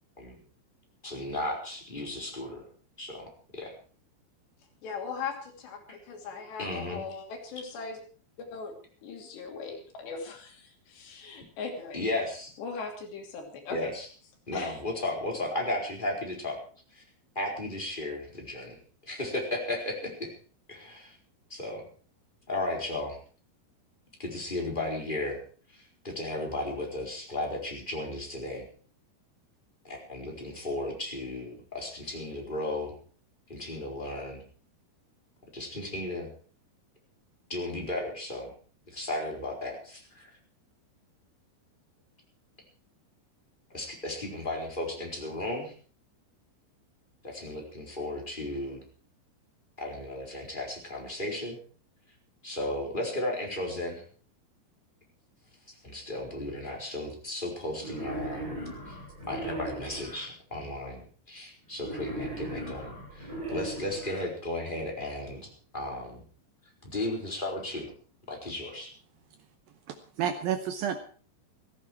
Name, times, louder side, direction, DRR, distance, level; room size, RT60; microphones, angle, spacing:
voice 1, 1.0-2.6 3.0-3.7 6.6-7.0 11.9-12.5 13.7-14.1 14.5-16.6 16.9-17.0 17.3-18.8 19.1-20.3 20.7-21.1 21.5-21.8 22.5-23.2 24.2-25.4 25.7-28.7 29.8-32.9 33.5-34.4 35.5-36.3 37.5-38.5 38.9-40.3 43.7-45.7 47.2-48.8 49.8-51.6 52.4-54.0 55.8-58.6 58.9-59.0 59.2-66.2 66.8-67.9 68.3-68.9, left 1 dB, 10° left, -1 dB, 4.2 m, -35 dB
voice 2, 4.8-8.0 8.4-8.8 9.0-12.0 12.6-13.9 14.5-14.8, left 5 dB, 80° left, 3 dB, 5.1 m, -39 dB
Wild animals, 57.8-60.3 61.8-64.3, right 1 dB, 20° right, 8.1 m, -38 dB
voice 3, 69.9-71.0, right 8 dB, 70° right, 8 dB, 2.4 m, -30 dB
16.5 x 15.0 x 4.7 m, 0.42 s
omnidirectional pair, 4.9 m